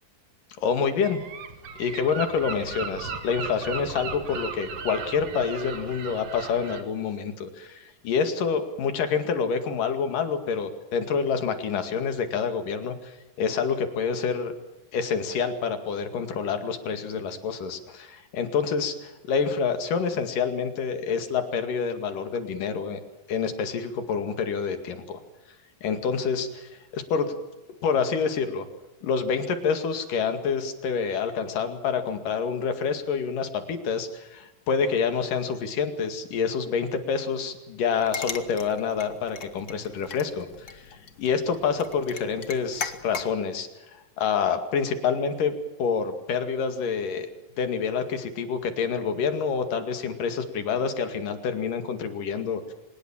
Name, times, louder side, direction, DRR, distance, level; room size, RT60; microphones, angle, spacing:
voice 1, 0.6-1.2 1.8-14.5 14.9-23.0 23.3-25.2 25.8-27.3 27.8-28.7 29.0-43.7 44.2-45.5 45.8-47.3 47.6-52.7, left 6 dB, 70° left, 8 dB, 3.8 m, -27 dB
Gull seagull, 1.0-6.8, right 6 dB, 60° right, 3.4 m, -37 dB
sound 1, 37.9-43.3, left 5 dB, 40° left, 1.3 m, -39 dB
25.0 x 20.0 x 7.3 m, 1.0 s
omnidirectional pair, 3.9 m